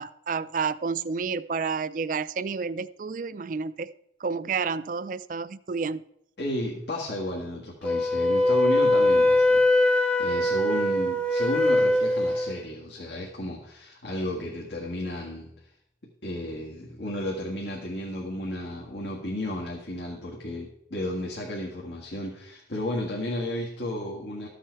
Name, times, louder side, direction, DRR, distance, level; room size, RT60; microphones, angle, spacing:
voice 1, 0.0-3.9 4.2-6.0, right 5 dB, 45° right, 16 dB, 0.4 m, -30 dB
voice 2, 6.4-9.6 10.2-15.7 16.2-24.5, left 1 dB, 75° left, -3 dB, 1.8 m, -33 dB
Wind instrument woodwind instrument, 7.8-12.6, left 1 dB, 5° left, 0.8 m, -22 dB
13.5 x 7.7 x 4.6 m, 0.75 s
head